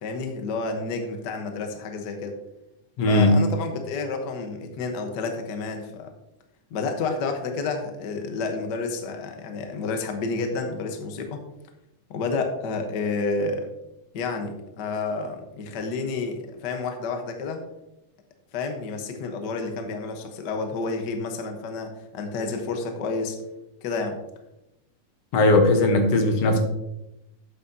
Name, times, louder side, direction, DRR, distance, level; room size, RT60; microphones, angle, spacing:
voice 1, 0.0-2.4 3.0-6.1 6.7-11.4 12.1-13.7 14.1-17.6 18.5-23.4 23.8-24.2, left 4 dB, 80° left, 4 dB, 0.9 m, -30 dB
voice 2, 3.0-3.5 25.3-26.6, left 2 dB, 65° left, 4 dB, 1.9 m, -18 dB
11.5 x 8.3 x 2.8 m, 0.88 s
omnidirectional pair, 3.7 m